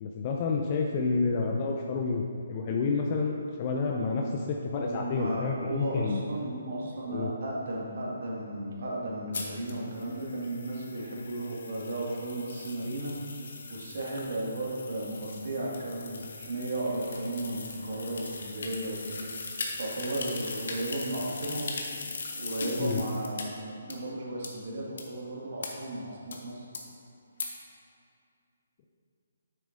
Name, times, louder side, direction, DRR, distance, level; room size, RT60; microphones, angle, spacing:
voice 1, 0.0-6.2 7.1-7.3 22.8-23.0, left 4 dB, 35° left, 0 dB, 0.6 m, -29 dB
voice 2, 4.8-19.3 19.8-21.7 22.3-26.7, right 1 dB, 55° right, -4 dB, 1.8 m, -35 dB
sound 1, 9.3-23.4 23.9-24.0 24.4-24.5 25.0-25.1 25.6-25.7 26.3-26.4 26.7-26.8 27.4-27.5, left 3 dB, 55° left, 1.0 m, -40 dB
9.4 x 7.6 x 2.6 m, 2.4 s
figure-of-eight pair, 140°, 0 cm